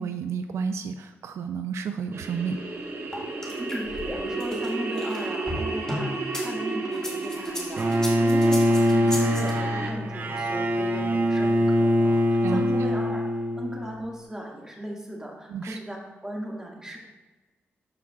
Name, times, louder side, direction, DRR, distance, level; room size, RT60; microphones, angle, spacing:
voice 1, 0.0-2.6 12.4-12.7 15.5-15.8, right 6 dB, 80° right, 8 dB, 0.4 m, -31 dB
sound 1, 2.1-9.9, right 3 dB, 65° right, 1.2 m, -33 dB
sound 2, 3.1-6.5 6.9-9.5, left 1 dB, 15° left, 1.9 m, -34 dB
voice 2, 3.6-17.0, right 1 dB, 15° right, -2 dB, 1.8 m, -37 dB
Bowed string instrument, 7.8-13.9, equal, 45° right, 0.7 m, -23 dB
12.5 x 4.8 x 2.3 m, 1.2 s
cardioid pair, 85°, 5 cm